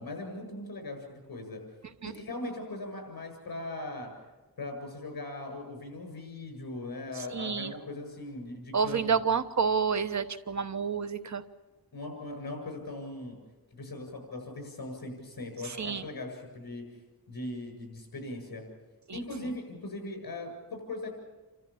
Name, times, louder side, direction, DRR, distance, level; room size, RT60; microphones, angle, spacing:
voice 1, 0.0-1.6 2.0-4.1 4.6-9.2 11.9-13.4 13.7-16.8 17.3-18.6 19.1-21.1, left 2 dB, 65° left, 4 dB, 7.4 m, -39 dB
voice 2, 7.3-7.7 8.7-11.4 15.6-16.0 19.1-19.2, right 6 dB, 50° right, 11 dB, 1.0 m, -29 dB
29.0 x 13.5 x 8.5 m, 1.2 s
wide cardioid pair, 100°, 37 cm